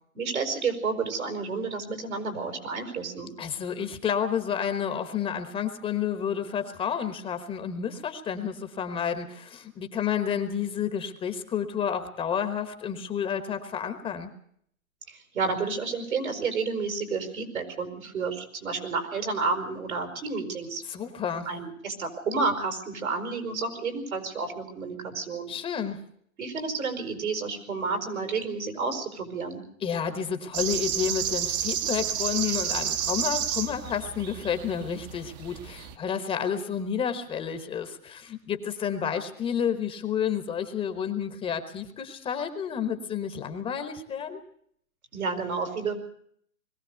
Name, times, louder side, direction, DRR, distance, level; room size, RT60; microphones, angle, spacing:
voice 1, 0.2-3.3 15.1-20.8 21.5-25.5 26.4-29.6 45.1-45.9, right 4 dB, 85° right, 6 dB, 5.6 m, -30 dB
voice 2, 3.4-14.3 20.9-21.5 25.5-26.0 29.8-44.4, left 8 dB, 15° left, 8 dB, 1.1 m, -30 dB
sound 1, 30.5-35.9, right 10 dB, 30° right, 1.0 m, -31 dB
21.5 x 16.0 x 8.1 m, 0.65 s
hypercardioid pair, 145°, 41 cm